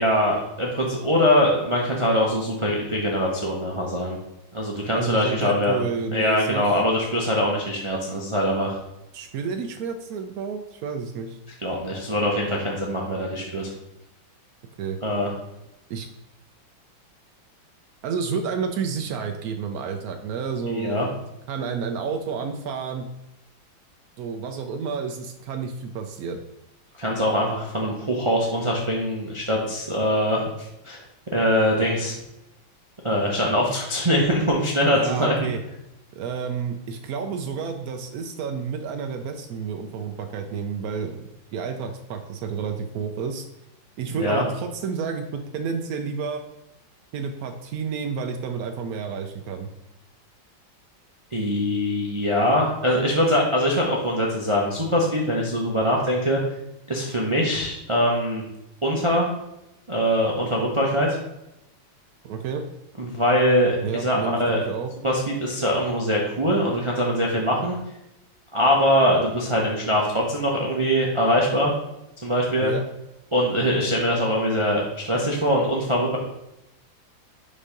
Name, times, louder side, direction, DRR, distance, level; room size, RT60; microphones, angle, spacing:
voice 1, 0.0-4.2 4.5-5.8 6.1-8.8 11.6-13.7 15.0-15.3 20.7-21.1 27.0-31.0 31.3-32.1 33.0-35.5 44.1-44.4 51.3-56.4 56.9-58.4 58.8-59.3 59.9-61.2 63.0-64.6 65.0-67.8 68.5-71.7 72.2-72.7 73.3-76.2, equal, 45° right, -3 dB, 0.4 m, -22 dB
voice 2, 4.9-6.8 9.1-11.4 14.8-15.0 15.9-16.1 18.0-21.2 21.5-23.1 24.2-26.4 34.9-35.6 36.1-43.5 44.0-46.4 47.1-49.7 62.2-62.6 63.8-64.9 72.6-72.8, right 6 dB, 85° right, 5 dB, 0.8 m, -30 dB
5.2 x 4.2 x 5.1 m, 0.89 s
omnidirectional pair, 2.2 m